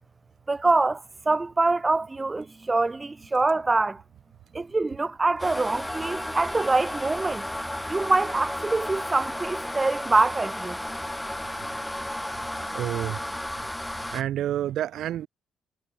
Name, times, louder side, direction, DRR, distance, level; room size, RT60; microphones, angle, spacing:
voice 1, 0.5-4.0 4.5-7.5 7.9-10.8, right 3 dB, 20° right, 2.0 m, -25 dB
sound 1, 5.4-14.2, left 1 dB, 5° left, 4.2 m, -33 dB
voice 2, 12.7-13.4 14.1-15.3, right 12 dB, 75° right, 1.3 m, -29 dB
cardioid pair, 90°, 0 cm